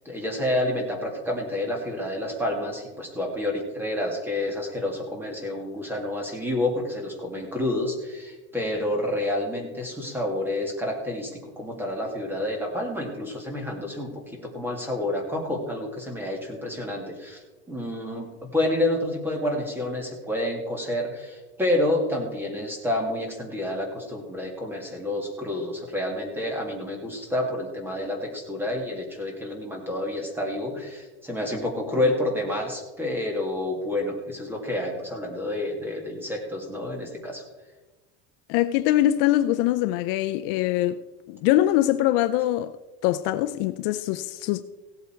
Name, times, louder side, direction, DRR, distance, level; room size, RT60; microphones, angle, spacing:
voice 1, 0.0-37.4, left 1 dB, 5° right, 2.1 m, -29 dB
voice 2, 38.5-41.0 41.3-42.8 43.0-44.6, left 14 dB, 55° left, 0.5 m, -23 dB
16.5 x 8.2 x 4.5 m
cardioid pair, 165°, 34 cm